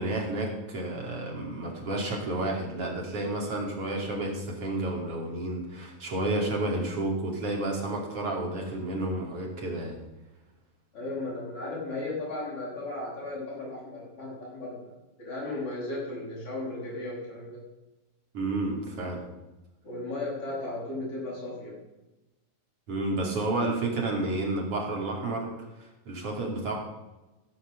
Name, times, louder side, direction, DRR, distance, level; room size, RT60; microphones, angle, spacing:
voice 1, 0.0-10.0 18.3-19.2 22.9-25.5 25.8-26.8, right 2 dB, 40° right, -1 dB, 3.3 m, -31 dB
voice 2, 10.9-14.9 15.2-17.6 19.8-21.8, left 2 dB, 35° left, -6 dB, 6.8 m, -35 dB
17.5 x 6.6 x 6.8 m, 1.1 s
omnidirectional pair, 4.5 m